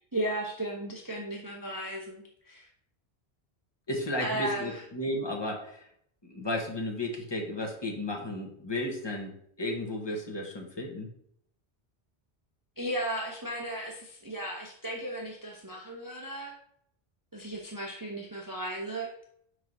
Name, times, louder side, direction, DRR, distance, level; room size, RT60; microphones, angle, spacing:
voice 1, 0.1-2.7 4.2-4.8 12.8-16.5 17.3-19.1, right 1 dB, 20° right, -1 dB, 0.7 m, -35 dB
voice 2, 3.9-5.8 6.3-11.1, left 1 dB, 25° left, 1 dB, 1.2 m, -33 dB
4.8 x 4.6 x 5.3 m, 0.70 s
omnidirectional pair, 1.1 m